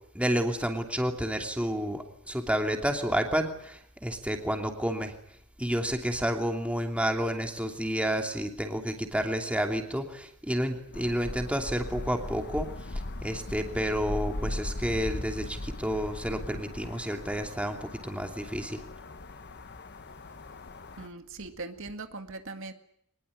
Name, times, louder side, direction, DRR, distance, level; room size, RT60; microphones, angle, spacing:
voice 1, 0.1-5.1 5.6-18.8, equal, 5° right, 4 dB, 2.9 m, -30 dB
sound 1, 10.9-21.1, left 1 dB, 50° left, 1.2 m, -39 dB
voice 2, 21.0-22.7, right 3 dB, 60° right, 7 dB, 2.0 m, -40 dB
24.0 x 21.0 x 9.9 m, 0.73 s
head